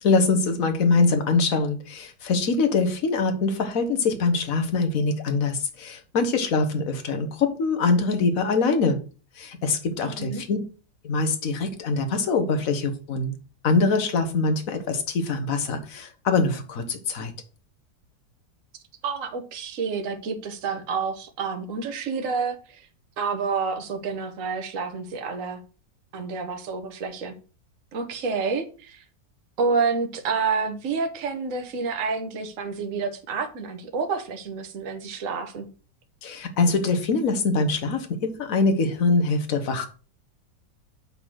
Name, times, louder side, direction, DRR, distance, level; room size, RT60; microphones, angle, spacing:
voice 1, 0.0-9.0 9.4-10.6 11.0-13.3 13.6-17.3 36.2-39.9, left 3 dB, 50° left, 7 dB, 1.5 m, -23 dB
voice 2, 10.0-10.4 19.0-22.8 23.2-25.6 26.1-27.3 27.9-29.0 29.6-35.7, right 5 dB, 50° right, 6 dB, 1.5 m, -29 dB
7.7 x 3.9 x 6.3 m, 0.36 s
omnidirectional pair, 1.9 m